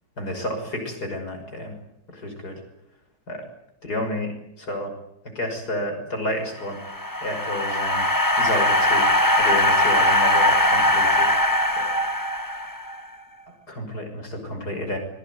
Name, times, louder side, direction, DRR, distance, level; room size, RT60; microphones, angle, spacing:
voice 1, 0.2-1.7 2.1-2.6 3.3-3.4 3.8-4.3 4.6-4.9 5.3-6.8 7.2-8.1 8.4-9.1 9.4-11.3 11.8-11.9 13.7-15.0, left 1 dB, 50° left, 5 dB, 6.5 m, -30 dB
sound 1, 6.6-13.0, left 1 dB, 10° left, 1.2 m, -20 dB
25.5 x 22.5 x 9.3 m, 0.83 s
omnidirectional pair, 2.1 m